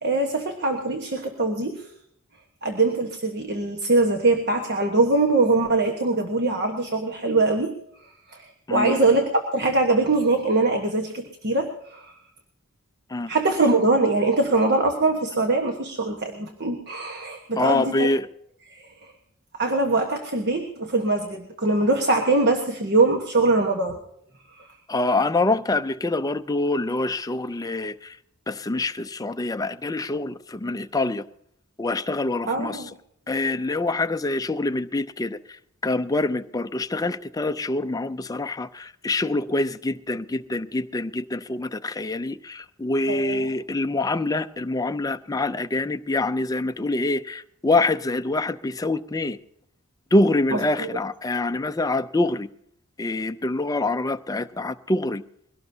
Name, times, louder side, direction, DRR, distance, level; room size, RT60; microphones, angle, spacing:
voice 1, 0.0-1.9 2.6-7.7 8.0-12.1 13.3-18.1 18.7-19.1 19.5-24.0 24.5-24.7 32.5-32.9 43.1-43.5 50.5-50.9, right 2 dB, 50° right, 1.3 m, -23 dB
voice 2, 17.6-18.3 24.9-28.2 28.5-31.3 31.8-32.8 33.3-49.4 50.1-52.5 53.0-55.2, left 2 dB, 15° left, 0.5 m, -25 dB
22.0 x 17.5 x 2.8 m
head